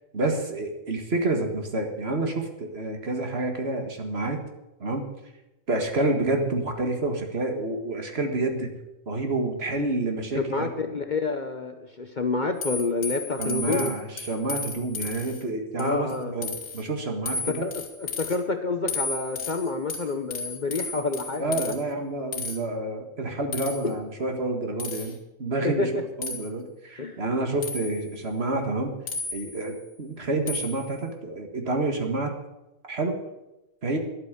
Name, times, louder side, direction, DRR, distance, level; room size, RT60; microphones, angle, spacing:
voice 1, 0.1-4.4 4.8-5.1 5.7-8.7 9.1-10.7 13.4-17.6 21.4-25.9 26.2-29.0 29.3-32.3 32.9-33.2 33.8-34.0, right 2 dB, 50° right, 4 dB, 2.0 m, -28 dB
voice 2, 10.3-14.0 15.8-16.3 17.3-21.7 23.8-24.0 25.6-26.0 27.0-27.2, left 3 dB, 40° left, 7 dB, 0.9 m, -28 dB
sound 1, 12.6-15.4 15.8-16.2 16.4-16.8 17.3-18.4 18.9-21.8 22.3-22.6 23.5-23.9 24.8-25.2 26.2-26.5 27.6-28.1 29.1-29.7 30.5-30.9, left 4 dB, 75° left, 2.1 m, -34 dB
11.5 x 8.8 x 8.1 m, 0.96 s
omnidirectional pair, 1.4 m